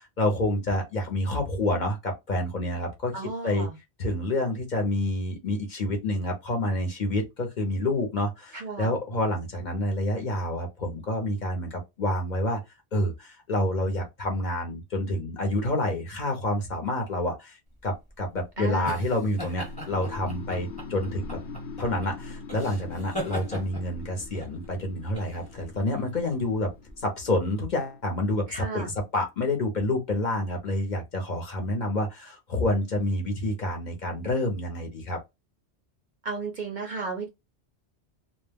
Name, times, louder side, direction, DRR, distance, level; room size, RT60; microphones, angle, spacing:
voice 1, 0.0-3.1 3.4-3.7 4.0-12.6 12.9-21.4 21.8-26.7 27.0-35.2, left 1 dB, 50° left, 0.7 m, -28 dB
voice 2, 3.1-3.8 8.5-8.9 18.6-19.1 28.5-28.9 36.2-37.3, right 4 dB, 55° right, 0.5 m, -34 dB
sound 1, 17.8-27.0, equal, 5° left, 0.9 m, -40 dB
sound 2, 19.1-29.1, left 4 dB, 80° left, 0.9 m, -44 dB
2.2 x 2.1 x 3.3 m
omnidirectional pair, 1.2 m